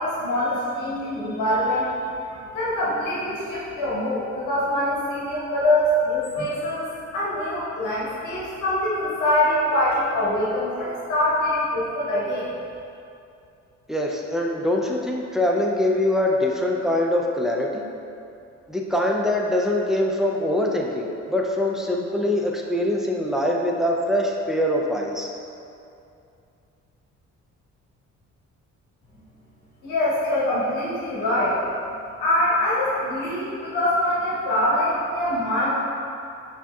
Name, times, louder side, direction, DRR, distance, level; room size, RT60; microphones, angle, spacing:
voice 1, 0.0-1.9 2.3-6.9 7.1-12.5 29.8-31.6 32.2-35.7, left 1 dB, 90° left, -7 dB, 1.0 m, -24 dB
voice 2, 13.9-17.8 18.7-25.3, left 1 dB, ahead, -1 dB, 0.4 m, -23 dB
5.9 x 2.7 x 2.3 m, 2.6 s
cardioid pair, 90°, 30 cm